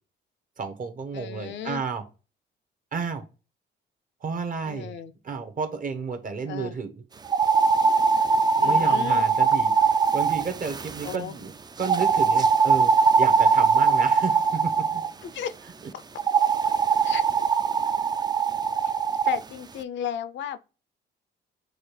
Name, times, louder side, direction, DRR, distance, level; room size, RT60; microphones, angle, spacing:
voice 1, 0.6-2.0 2.9-3.2 4.2-4.9 5.2-7.0 8.6-9.7 10.1-11.5 11.8-15.0, right 5 dB, 45° right, 0.9 m, -31 dB
voice 2, 1.1-1.8 4.7-5.1 6.5-6.7 8.6-9.2 11.0-11.4 15.2-15.5 15.9-16.0 17.0-17.2 19.2-20.6, left 9 dB, 65° left, 0.5 m, -34 dB
sound 1, 7.3-11.2 11.8-15.1 16.2-19.4, right 5 dB, 20° right, 0.3 m, -21 dB
6.4 x 2.4 x 3.2 m
cardioid pair, 90°, 20 cm